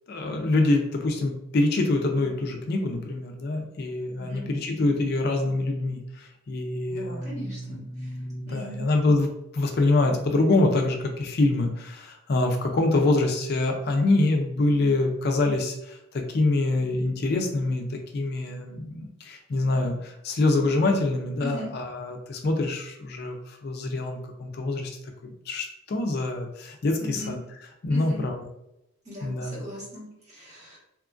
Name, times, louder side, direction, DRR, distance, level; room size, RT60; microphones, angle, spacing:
voice 1, 0.1-9.3 9.5-24.9 25.2-27.4 27.8-28.4 29.2-29.6, left 2 dB, 50° left, 3 dB, 0.4 m, -25 dB
voice 2, 4.2-4.5 7.0-8.1 8.5-8.9 12.9-13.1 21.4-21.7 27.0-27.3 27.9-28.3 29.0-30.8, left 1 dB, 35° right, -6 dB, 1.3 m, -38 dB
2.8 x 2.4 x 2.4 m, 0.82 s
head